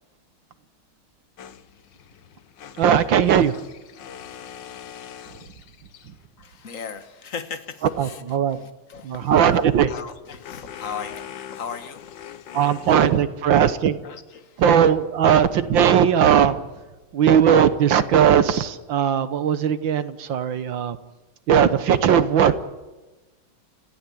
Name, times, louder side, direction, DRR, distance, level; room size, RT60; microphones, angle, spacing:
sound 1, 1.4-6.3 9.4-13.6, left 9 dB, 65° left, 1.6 m, -42 dB
voice 1, 2.8-3.6 5.3-5.4 6.0-6.2 7.8-8.7 9.0-9.9 12.5-14.0 14.6-16.8 17.1-21.0 21.5-22.5, right 8 dB, 65° right, 12 dB, 1.7 m, -18 dB
voice 2, 6.4-7.8 8.9-9.3 9.9-12.6 14.0-14.6, left 6 dB, 40° left, 9 dB, 1.7 m, -37 dB
29.5 x 15.0 x 8.5 m, 1.2 s
omnidirectional pair, 2.3 m